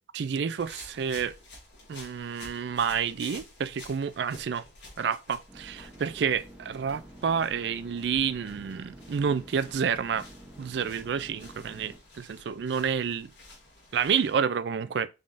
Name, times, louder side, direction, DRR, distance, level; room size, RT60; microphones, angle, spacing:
voice 1, 0.1-1.3 1.9-4.7 5.0-10.2 10.6-13.3 13.9-15.1, right 7 dB, 65° right, 0.4 m, -29 dB
sound 1, 0.6-14.3, left 2 dB, 80° left, 2.3 m, -51 dB
sound 2, 5.5-12.0, equal, 10° right, 0.9 m, -49 dB
5.2 x 3.6 x 2.6 m
head